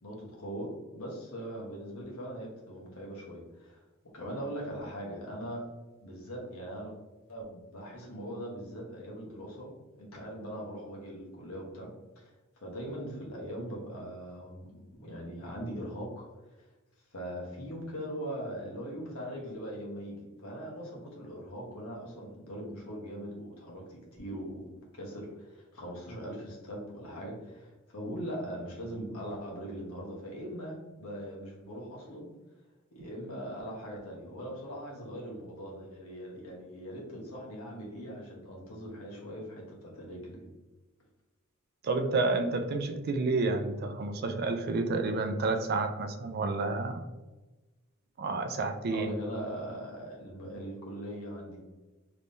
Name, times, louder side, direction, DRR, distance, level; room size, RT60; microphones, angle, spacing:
voice 1, 0.0-3.8 4.1-5.6 6.0-6.9 7.3-11.9 12.1-12.3 12.6-16.3 17.1-24.6 24.9-32.3 32.9-40.5 48.9-51.6, equal, 85° left, -2 dB, 1.1 m, -41 dB
voice 2, 41.8-47.0 48.2-49.1, right 3 dB, 45° right, 7 dB, 0.4 m, -30 dB
3.5 x 3.1 x 2.6 m, 1.1 s
head